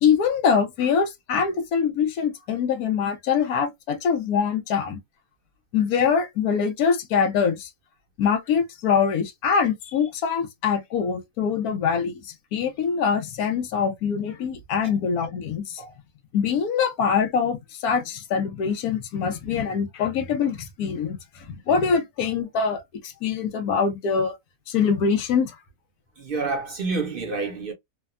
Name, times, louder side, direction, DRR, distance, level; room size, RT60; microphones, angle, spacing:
voice 1, 0.0-5.0 5.7-7.7 8.2-15.8 16.3-24.3 24.7-25.6, left 6 dB, 85° left, 1.2 m, -24 dB
voice 2, 26.2-27.7, right 4 dB, 50° right, 0.7 m, -28 dB
3.3 x 2.1 x 2.3 m
omnidirectional pair, 1.6 m